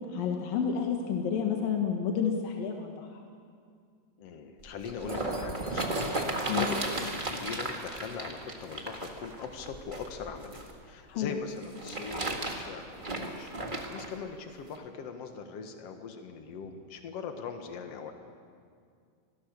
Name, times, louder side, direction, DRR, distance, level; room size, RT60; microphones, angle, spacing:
voice 1, 0.1-3.1 6.5-6.7 11.1-11.3, left 7 dB, 85° left, 2 dB, 3.2 m, -30 dB
voice 2, 4.2-6.1 6.3-18.1, left 6 dB, 55° left, 5 dB, 2.3 m, -41 dB
sound 1, 4.6-10.7 11.6-14.1 14.8-14.9, right 2 dB, 25° right, 1.2 m, -34 dB
25.5 x 18.5 x 6.9 m, 2.2 s
omnidirectional pair, 3.9 m